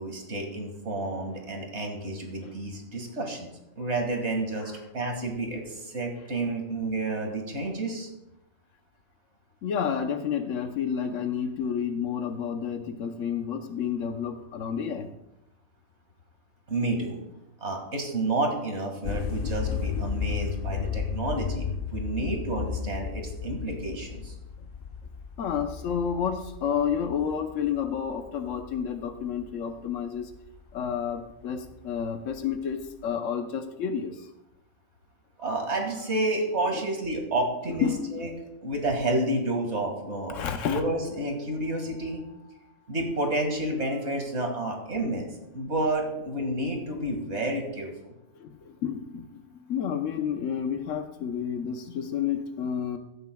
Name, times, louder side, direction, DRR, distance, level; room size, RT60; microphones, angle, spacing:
voice 1, 0.0-3.5 3.8-8.1 16.7-17.2 17.6-24.3 35.4-38.3 38.6-40.4 40.7-42.2 42.9-45.3 45.5-48.1, right 2 dB, 65° right, 2 dB, 2.2 m, -30 dB
voice 2, 9.6-15.1 25.4-30.3 30.7-34.3 36.7-36.8 37.8-38.3 40.3-40.8 48.4-53.0, left 7 dB, 90° left, 6 dB, 1.2 m, -30 dB
sound 1, 19.0-29.9 30.2-32.0 32.3-33.0, left 6 dB, 55° left, 0.7 m, -34 dB
16.0 x 11.0 x 2.3 m, 0.90 s
omnidirectional pair, 1.3 m